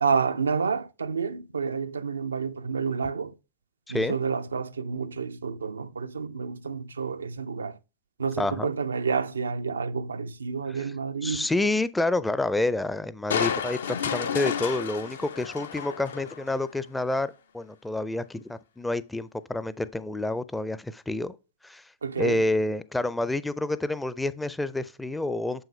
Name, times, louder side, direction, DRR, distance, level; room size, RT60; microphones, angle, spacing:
voice 1, 0.0-3.4 3.9-7.8 8.2-11.5 22.0-22.5, right 5 dB, 75° right, 0.3 m, -29 dB
voice 2, 8.4-8.7 10.7-10.9 11.2-21.4 21.6-21.8 22.2-25.6, left 2 dB, 5° left, 0.4 m, -28 dB
Crushing, 13.3-16.7 17.1-17.2, left 7 dB, 65° left, 0.5 m, -31 dB
7.1 x 5.5 x 3.1 m
figure-of-eight pair, 90°, 0 cm